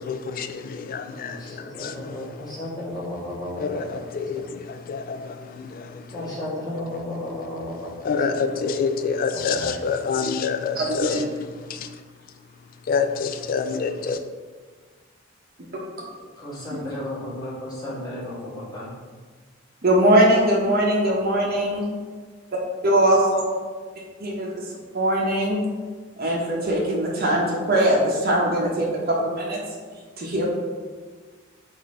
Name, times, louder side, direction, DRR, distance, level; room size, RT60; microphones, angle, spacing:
voice 1, 0.0-2.6 3.6-6.4 8.0-11.3 11.5-12.0 12.9-14.2, left 5 dB, 45° left, 8 dB, 0.3 m, -28 dB
voice 2, 1.2-4.0 6.1-7.9 9.3-9.6 16.4-18.9, left 1 dB, 20° left, -9 dB, 1.4 m, -33 dB
voice 3, 10.8-11.3 19.8-21.8 22.8-23.4 24.2-24.5 24.9-25.6 26.2-29.6 30.2-30.4, right 1 dB, 50° right, -3 dB, 0.7 m, -21 dB
4.1 x 2.6 x 4.2 m, 1.5 s
head